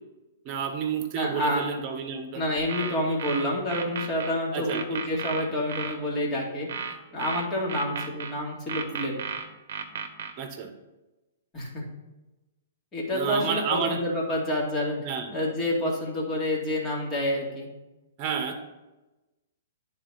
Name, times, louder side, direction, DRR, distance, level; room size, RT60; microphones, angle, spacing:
voice 1, 0.4-2.4 4.5-4.8 10.4-10.7 13.1-14.0 15.0-15.4 18.2-18.6, right 6 dB, 35° right, 5 dB, 1.2 m, -30 dB
voice 2, 1.1-1.6 2.3-9.1 11.5-11.8 12.9-15.0 15.3-17.7, left 1 dB, 20° left, -3 dB, 2.3 m, -28 dB
sound 1, 2.6-4.3 4.7-6.0 6.7-8.3 8.7-10.3, right 6 dB, 65° right, 0.8 m, -34 dB
9.8 x 4.2 x 4.1 m, 1.1 s
hypercardioid pair, 135°, 0 cm